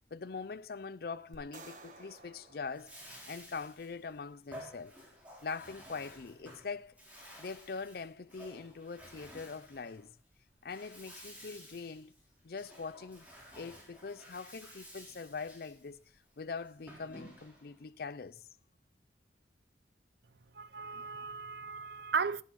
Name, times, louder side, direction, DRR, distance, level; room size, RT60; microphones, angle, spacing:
voice 1, 0.1-3.0 3.3-5.0 5.4-6.9 7.4-10.1 10.6-12.1 12.4-13.3 13.5-16.0 16.4-18.4, left 4 dB, 55° left, 0.5 m, -43 dB
sound 1, 1.3-3.7, right 3 dB, 45° right, 1.6 m, -55 dB
Bathtub (filling or washing), 2.6-17.8, equal, 10° right, 3.6 m, -53 dB
voice 2, 20.5-22.4, right 5 dB, 65° right, 0.6 m, -36 dB
12.0 x 11.0 x 4.1 m
head